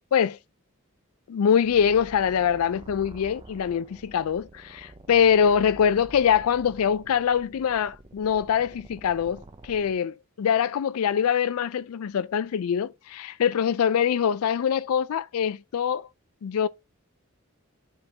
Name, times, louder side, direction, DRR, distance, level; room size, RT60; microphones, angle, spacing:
voice 1, 1.3-16.1 16.4-16.7, left 8 dB, 80° left, 0.4 m, -24 dB
sound 1, 1.6-9.9, right 2 dB, 25° right, 0.5 m, -48 dB
10.5 x 3.7 x 2.8 m
head